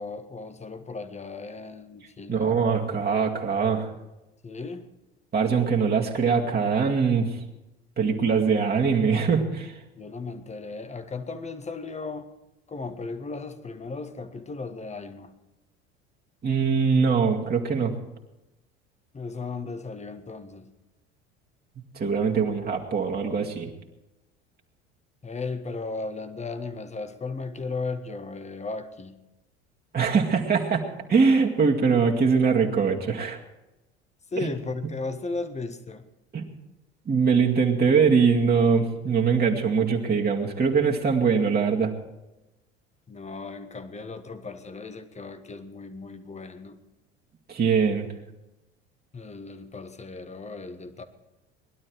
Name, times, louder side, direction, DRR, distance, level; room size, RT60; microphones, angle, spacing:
voice 1, 0.0-3.0 4.4-4.9 9.9-12.3 12.7-15.3 19.1-20.7 25.2-29.2 34.3-36.0 43.1-46.8 49.1-51.0, left 3 dB, 20° left, 9 dB, 1.5 m, -36 dB
voice 2, 2.3-3.9 5.3-7.4 8.0-9.7 16.4-17.9 21.9-23.7 29.9-30.8 31.1-33.4 36.3-36.5 37.1-41.9 47.5-48.1, right 5 dB, 30° right, -1 dB, 2.2 m, -22 dB
20.0 x 12.0 x 4.7 m, 0.97 s
hypercardioid pair, 70°, 32 cm